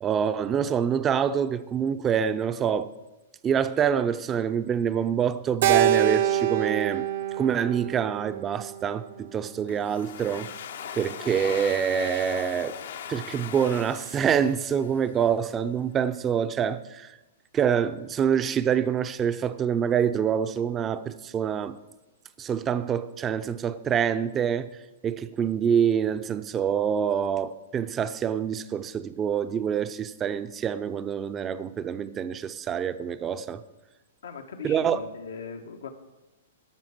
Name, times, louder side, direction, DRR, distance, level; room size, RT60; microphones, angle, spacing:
voice 1, 0.0-2.9 3.4-7.1 7.4-10.6 11.0-12.8 13.1-17.1 17.5-21.8 22.4-24.8 25.0-33.6 34.6-35.0, right 8 dB, 20° right, 0.6 m, -26 dB
Keyboard (musical), 5.6-10.0, right 11 dB, 60° right, 0.8 m, -26 dB
Domestic sounds home sounds, 9.7-15.3, left 8 dB, 70° left, 0.9 m, -40 dB
voice 2, 34.2-35.9, left 5 dB, 90° left, 1.4 m, -39 dB
13.0 x 5.8 x 7.5 m
hypercardioid pair, 150°, 0 cm